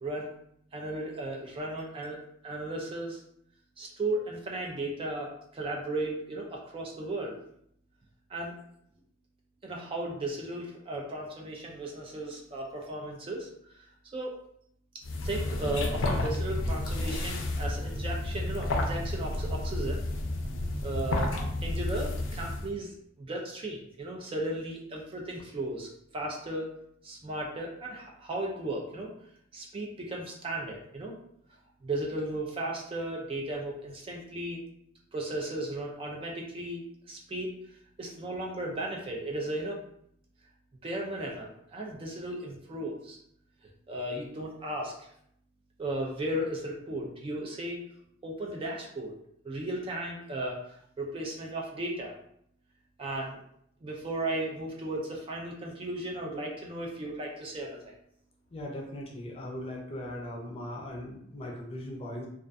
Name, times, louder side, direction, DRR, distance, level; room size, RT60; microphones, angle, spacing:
voice 1, 0.7-3.2 3.8-7.4 8.3-8.6 9.6-13.5 14.1-14.4 15.2-20.0 20.8-21.3 21.6-22.9 23.2-26.7 27.0-29.1 29.5-31.1 31.8-34.6 35.1-37.5 38.0-39.8 40.8-43.2 43.9-45.1 45.8-47.8 48.2-49.2 49.4-52.1 53.0-53.4 53.8-57.9, right 1 dB, 30° right, -1 dB, 0.3 m, -35 dB
sound 1, 15.0-22.7, left 2 dB, 85° left, 0.4 m, -31 dB
voice 2, 58.5-62.3, left 1 dB, 30° left, -1 dB, 0.5 m, -39 dB
2.3 x 2.2 x 2.5 m, 0.71 s
head